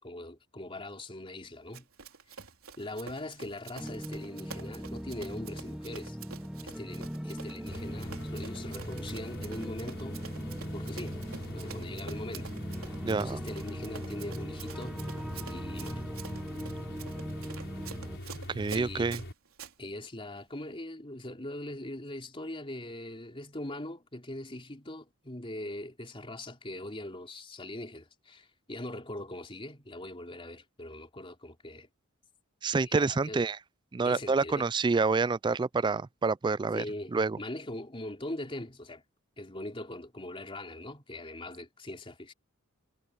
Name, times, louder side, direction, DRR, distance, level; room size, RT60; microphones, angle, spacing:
voice 1, 0.0-1.9 2.8-6.2 6.6-10.2 10.7-11.2 11.5-12.5 13.1-15.0 15.3-16.0 18.7-19.1 19.8-31.9 32.9-33.5 34.0-34.7 36.7-39.0 39.4-42.3, left 1 dB, 25° left, 3.5 m, -41 dB
Run, 1.7-19.7, right 6 dB, 70° right, 3.9 m, -48 dB
sound 1, 3.8-18.2, equal, 5° right, 0.9 m, -40 dB
sound 2, 7.7-19.3, equal, 60° left, 5.8 m, -43 dB
voice 2, 13.0-13.4 18.5-19.2 32.6-33.6 33.9-36.8 37.1-37.4, right 4 dB, 20° right, 0.3 m, -28 dB
head